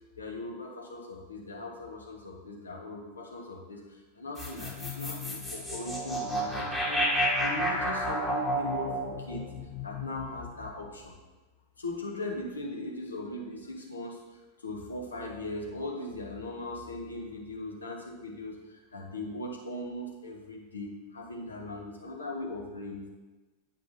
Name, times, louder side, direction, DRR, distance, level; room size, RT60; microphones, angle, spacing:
voice 1, 0.2-7.1 7.4-9.4 9.8-11.1 11.8-23.1, left 2 dB, 75° left, 0 dB, 1.3 m, -39 dB
sound 1, 4.4-10.7, equal, 5° left, 1.2 m, -31 dB
9.1 x 5.3 x 2.7 m, 1.2 s
figure-of-eight pair, 90°, 0 cm